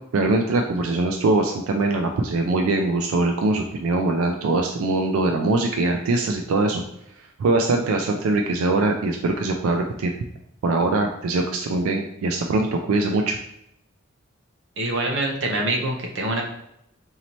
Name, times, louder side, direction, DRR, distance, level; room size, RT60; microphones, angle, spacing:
voice 1, 0.1-6.8 7.4-10.1 10.6-13.4, right 2 dB, 90° right, 3 dB, 0.4 m, -22 dB
voice 2, 14.8-16.4, right 2 dB, 60° right, 0 dB, 0.7 m, -25 dB
4.1 x 2.7 x 3.0 m, 0.76 s
head